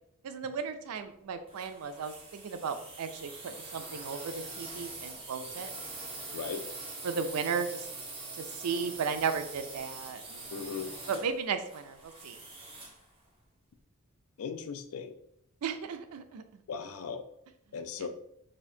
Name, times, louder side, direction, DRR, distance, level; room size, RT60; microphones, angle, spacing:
voice 1, 0.2-5.7 7.0-7.9 8.3-10.5 11.1-12.4 15.6-16.6, right 6 dB, 90° right, 9 dB, 0.4 m, -35 dB
sound 1, 1.5-13.0, right 3 dB, 25° right, 0.8 m, -44 dB
voice 2, 6.3-6.6 10.5-10.9 14.4-15.2 16.7-17.2 17.7-18.1, left 6 dB, 75° left, 8 dB, 0.4 m, -37 dB
4.2 x 2.5 x 2.7 m, 0.73 s
head